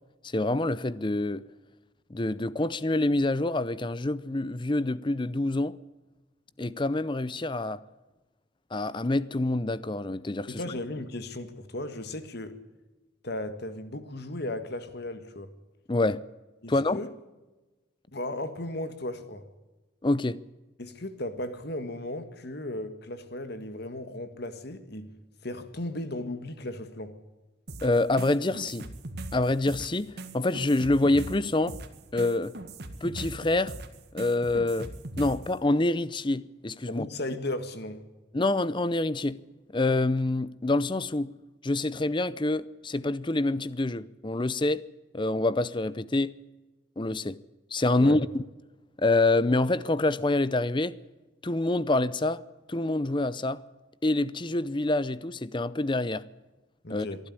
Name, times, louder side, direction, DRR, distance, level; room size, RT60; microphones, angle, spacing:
voice 1, 0.2-1.4 2.1-5.8 6.6-7.8 8.7-10.6 15.9-16.2 16.7-17.0 20.0-20.4 27.8-28.9 29.3-31.8 32.1-32.5 33.0-33.8 34.1-34.9 35.2-37.1 38.3-39.4 39.7-41.3 41.6-44.8 45.1-46.3 47.0-47.4 47.7-48.4 49.0-51.0 51.4-52.4 52.7-53.6 54.0-56.2 56.9-57.1, left 2 dB, 25° left, 0.6 m, -26 dB
voice 2, 10.5-12.5 13.2-15.5 16.6-17.1 18.1-19.4 20.8-25.1 25.4-27.1 36.9-38.0 48.0-48.2 56.8-57.2, left 1 dB, 55° left, 1.7 m, -36 dB
sound 1, 27.7-35.5, right 2 dB, 55° right, 1.9 m, -40 dB
23.0 x 12.0 x 9.7 m
head